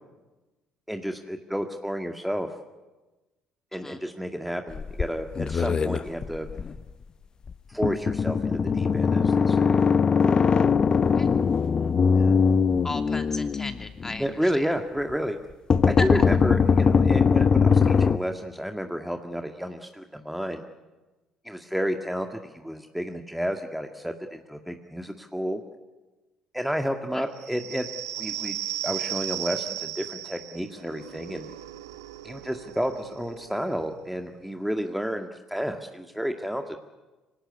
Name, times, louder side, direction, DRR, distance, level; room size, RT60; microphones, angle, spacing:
voice 1, 0.9-2.5 3.7-6.5 7.7-9.8 12.2-12.4 14.2-15.4 15.8-20.6 21.5-25.6 26.5-27.9 28.2-28.6 28.8-31.5 32.2-36.8, equal, ahead, 5 dB, 1.9 m, -31 dB
sound 1, 4.7-6.8 7.5-7.6 7.8-14.2 15.7-18.2, left 5 dB, 40° left, 0.8 m, -21 dB
voice 2, 12.8-14.7 16.0-16.2 27.1-27.3, left 2 dB, 20° left, 6 dB, 2.8 m, -35 dB
sound 2, 27.4-34.6, right 13 dB, 80° right, 0.9 m, -36 dB
25.5 x 18.0 x 9.6 m, 1.2 s
hypercardioid pair, 50°, 2 cm